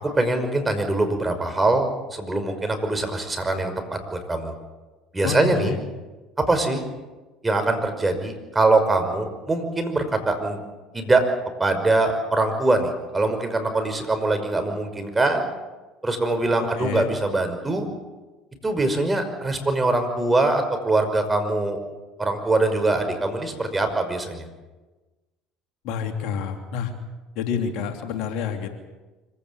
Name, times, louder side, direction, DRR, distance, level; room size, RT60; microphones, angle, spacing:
voice 1, 0.0-4.5 5.1-5.8 6.4-6.8 7.4-10.6 10.9-11.2 11.6-15.5 16.0-17.9 18.6-21.8 22.2-24.5, right 2 dB, 20° right, 6 dB, 5.6 m, -23 dB
voice 2, 5.2-5.8 16.8-17.1 25.8-26.9 27.3-28.7, left 6 dB, 65° left, 5 dB, 2.9 m, -28 dB
25.5 x 16.5 x 8.5 m, 1.2 s
hypercardioid pair, 70°, 0 cm